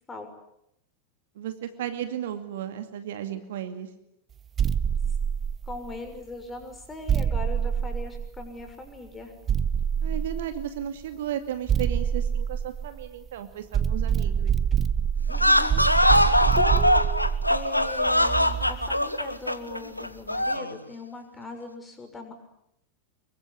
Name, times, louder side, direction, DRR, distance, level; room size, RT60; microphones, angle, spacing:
voice 1, 1.4-3.9 10.0-14.5, right 10 dB, 55° right, 9 dB, 2.3 m, -34 dB
sound 1, 4.6-6.1 7.1-8.7 9.5-10.8 11.7-13.3 13.7-19.0, right 8 dB, 25° right, 1.1 m, -26 dB
voice 2, 5.7-9.3 15.3-16.2 16.5-22.3, left 3 dB, 15° left, 5 dB, 6.6 m, -40 dB
sound 2, 15.3-20.7, left 1 dB, 85° left, 1.4 m, -22 dB
25.5 x 23.5 x 9.9 m, 0.79 s
figure-of-eight pair, 90°, 0 cm